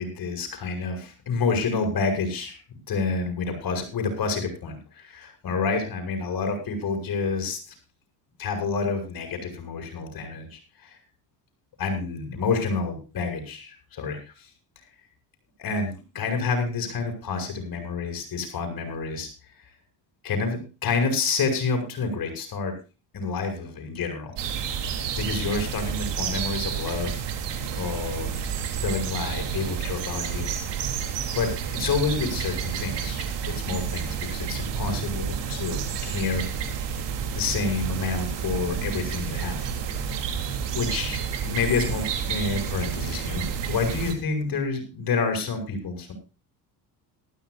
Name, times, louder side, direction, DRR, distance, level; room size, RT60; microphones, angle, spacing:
voice 1, 0.0-2.6 2.9-7.6 8.4-11.0 11.8-14.3 15.6-19.3 20.2-22.7 23.1-24.3 25.2-27.2 27.8-28.4 28.8-30.5 31.3-33.3 33.6-36.4 37.0-37.1 37.3-39.7 40.7-46.1, left 4 dB, 50° left, 5 dB, 7.9 m, -28 dB
sound 1, 24.4-44.1, right 7 dB, 65° right, 3.6 m, -30 dB
18.5 x 15.0 x 2.7 m, 0.32 s
supercardioid pair, 90°, 45 cm